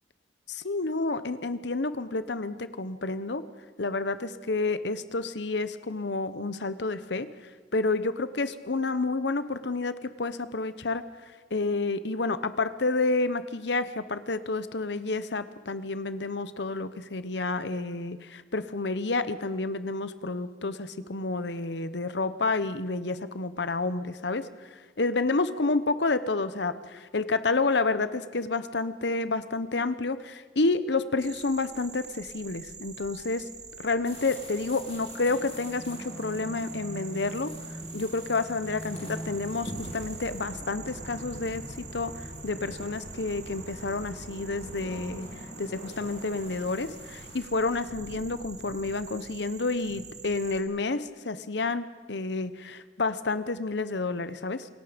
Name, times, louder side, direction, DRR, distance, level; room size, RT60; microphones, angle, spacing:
voice 1, 0.5-3.4 3.8-7.3 7.7-11.0 11.5-24.5 25.0-33.4 33.8-37.5 37.9-42.1 42.4-45.3 45.6-54.7, left 3 dB, 65° left, 13 dB, 1.0 m, -29 dB
sound 1, 31.2-50.6, right 6 dB, 40° right, 2.1 m, -46 dB
sound 2, 34.0-47.4, equal, 35° left, 4.7 m, -43 dB
sound 3, 39.6-45.2, equal, 5° right, 2.7 m, -47 dB
27.5 x 18.0 x 5.2 m, 1.4 s
head